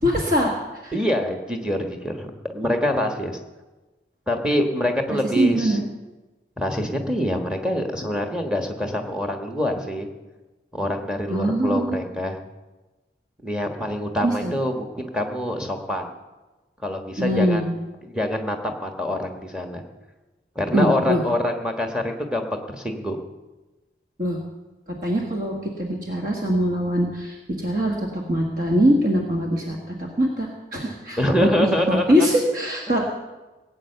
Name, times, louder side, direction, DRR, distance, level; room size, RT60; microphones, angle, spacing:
voice 1, 0.0-0.9 5.4-5.8 11.3-12.0 14.2-14.5 17.2-17.7 20.7-21.2 24.2-24.4 25.0-33.1, equal, 50° right, 0 dB, 1.7 m, -22 dB
voice 2, 0.9-3.4 4.3-5.8 6.6-10.1 10.7-12.4 13.4-16.1 16.8-17.7 18.0-19.8 20.5-23.2 31.2-32.0 32.9-33.1, left 1 dB, 5° right, 5 dB, 1.3 m, -25 dB
18.0 x 8.7 x 6.8 m, 1.2 s
head